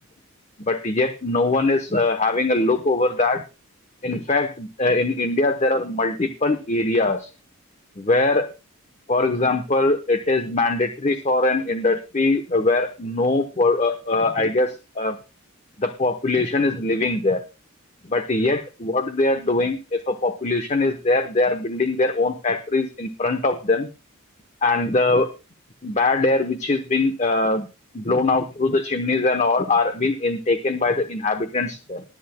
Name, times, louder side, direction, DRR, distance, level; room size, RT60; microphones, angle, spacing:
voice 1, 0.6-3.4 4.0-7.3 8.0-8.5 9.1-15.2 15.8-17.4 18.1-23.9 24.6-25.3 25.8-27.7 27.9-32.0, left 2 dB, 30° left, 8 dB, 0.9 m, -22 dB
21.0 x 9.7 x 2.2 m, 0.30 s
head